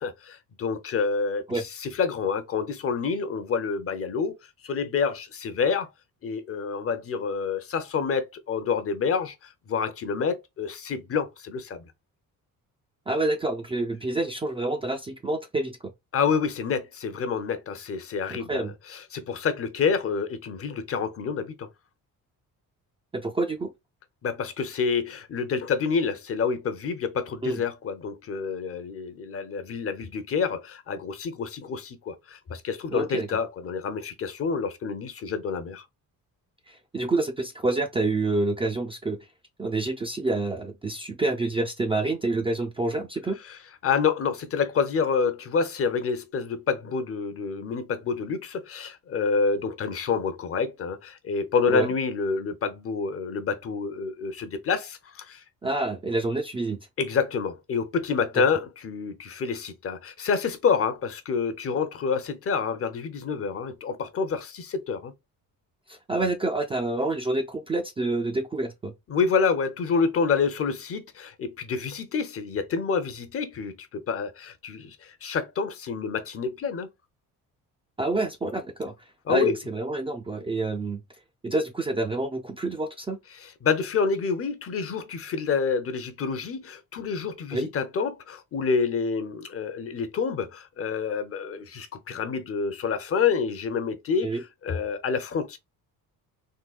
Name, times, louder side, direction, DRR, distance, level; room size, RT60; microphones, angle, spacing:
voice 1, 0.0-4.3 4.6-5.9 6.2-11.9 16.1-21.7 24.2-35.8 43.5-43.6 43.8-55.4 57.0-65.1 69.1-76.9 79.3-79.5 83.4-95.6, left 5 dB, 40° left, 0.6 m, -28 dB
voice 2, 13.1-15.8 18.3-18.7 23.1-23.7 27.4-27.6 32.9-33.3 36.7-39.2 39.6-43.4 51.7-51.9 55.6-56.9 65.9-68.9 78.0-78.9 79.3-81.0 81.4-83.2 87.5-87.7 94.2-94.4, right 2 dB, 15° right, 0.3 m, -28 dB
3.8 x 2.2 x 2.3 m
cardioid pair, 125°, 34 cm